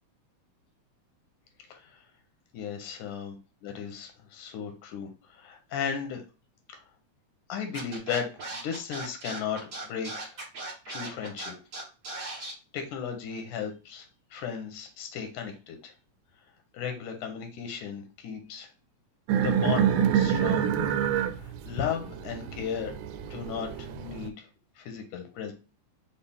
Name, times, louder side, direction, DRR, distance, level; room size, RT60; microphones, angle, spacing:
voice 1, 2.5-6.2 6.7-6.8 7.5-10.4 10.9-11.6 12.7-14.1 14.3-15.9 16.7-18.7 19.4-20.7 21.4-22.9 23.3-24.5 24.8-25.5, left 7 dB, 85° left, 5 dB, 2.2 m, -35 dB
Scratching (performance technique), 7.7-12.5, right 2 dB, 50° right, 1.0 m, -38 dB
sound 1, 19.3-24.3, right 8 dB, 85° right, 2.1 m, -26 dB
5.4 x 2.4 x 3.5 m, 0.33 s
omnidirectional pair, 3.5 m